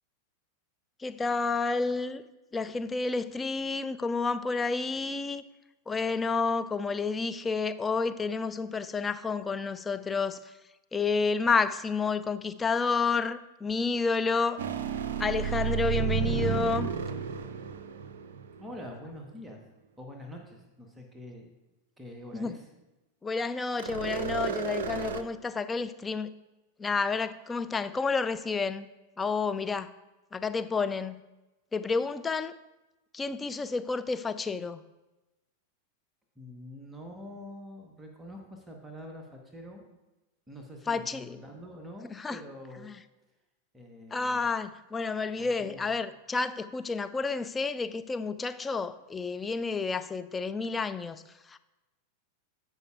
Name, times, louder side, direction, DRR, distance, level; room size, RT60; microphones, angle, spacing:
voice 1, 1.0-2.2 2.5-5.4 5.9-10.4 10.9-14.6 15.2-16.9 22.3-22.5 23.2-26.3 26.8-28.9 29.2-29.9 30.3-31.2 31.7-32.5 33.1-34.8 40.9-41.4 42.1-42.4 42.8-43.0 44.1-51.2 51.5-51.6, left 4 dB, 15° left, 0.4 m, -30 dB
sound 1, 14.6-18.8 23.8-25.2, right 6 dB, 60° right, 0.4 m, -32 dB
voice 2, 18.6-19.6 20.0-21.5 22.0-22.6 36.4-39.8 40.5-42.9 43.7-44.4 45.4-46.0, left 1 dB, 10° right, 1.1 m, -45 dB
16.0 x 5.4 x 2.4 m
figure-of-eight pair, 90°, 0 cm